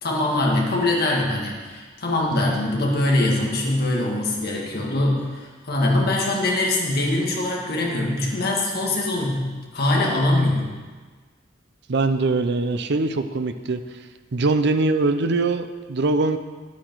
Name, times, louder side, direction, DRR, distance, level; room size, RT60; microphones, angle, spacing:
voice 1, 0.0-10.7, left 1 dB, 55° left, -2 dB, 1.9 m, -23 dB
voice 2, 11.9-13.8 14.3-16.4, right 3 dB, 60° right, 9 dB, 0.6 m, -22 dB
9.9 x 8.5 x 4.6 m, 1.4 s
head